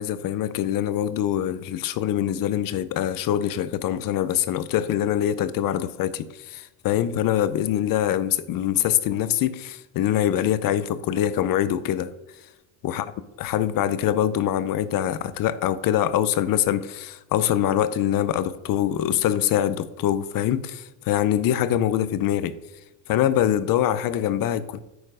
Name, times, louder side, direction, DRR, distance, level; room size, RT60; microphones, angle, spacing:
voice 1, 0.0-12.1 12.8-13.1 13.4-22.6 23.1-24.8, left 11 dB, 55° left, 0.7 m, -24 dB
9.2 x 4.4 x 4.9 m
cardioid pair, 110°, 40 cm